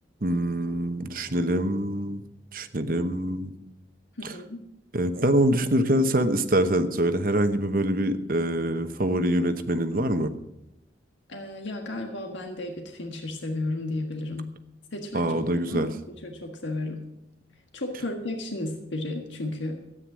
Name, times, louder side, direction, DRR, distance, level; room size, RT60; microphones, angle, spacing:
voice 1, 0.2-2.2 2.5-3.5 4.2-4.3 4.9-10.3 15.1-15.9, right 1 dB, 50° right, 9 dB, 1.0 m, -25 dB
voice 2, 4.2-4.6 11.3-14.5 14.9-15.3 15.7-17.0 17.7-19.8, left 2 dB, 90° left, 3 dB, 1.6 m, -33 dB
13.5 x 9.3 x 6.2 m, 0.88 s
head